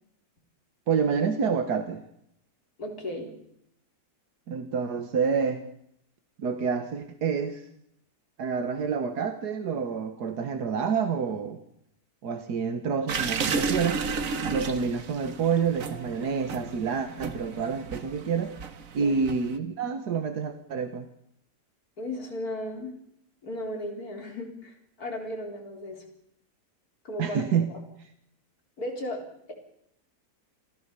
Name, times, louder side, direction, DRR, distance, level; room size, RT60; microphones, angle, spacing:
voice 1, 0.9-2.0 4.5-5.6 6.4-7.7 8.4-11.6 12.2-14.1 14.5-18.6 18.9-21.1 27.2-27.7, right 6 dB, 80° right, 8 dB, 1.8 m, -28 dB
voice 2, 2.8-3.3 19.0-19.2 22.0-22.9 23.4-26.0 27.0-27.8 28.8-29.2, left 1 dB, 70° left, 2 dB, 4.5 m, -35 dB
sound 1, 13.1-19.6, right 5 dB, 60° right, 1.6 m, -33 dB
25.0 x 16.0 x 6.8 m, 0.73 s
omnidirectional pair, 1.7 m